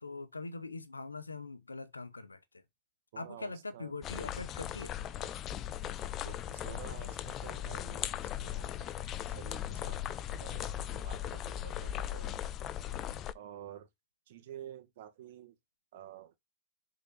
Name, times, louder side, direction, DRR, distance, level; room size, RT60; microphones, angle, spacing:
voice 1, 0.0-2.6 3.2-4.9, left 3 dB, 80° left, 0.7 m, -42 dB
voice 2, 3.1-4.0 6.2-8.8 9.3-10.0 10.3-12.4 13.3-13.9 14.3-15.5 15.9-16.3, right 11 dB, 60° right, 1.5 m, -50 dB
sound 1, 4.0-13.3, left 11 dB, 35° left, 0.5 m, -38 dB
6.4 x 3.9 x 4.6 m
figure-of-eight pair, 85°, 0 cm